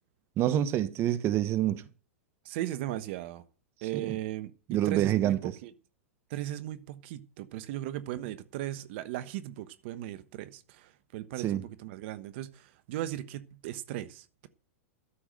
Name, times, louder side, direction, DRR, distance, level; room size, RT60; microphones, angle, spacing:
voice 1, 0.4-1.8 3.9-4.2 4.7-5.5 11.4-11.6, right 12 dB, 35° right, 1.2 m, -27 dB
voice 2, 2.4-3.4 3.8-5.7 6.3-14.5, right 14 dB, 55° right, 1.2 m, -37 dB
13.0 x 7.0 x 7.7 m
hypercardioid pair, 105°, 7 cm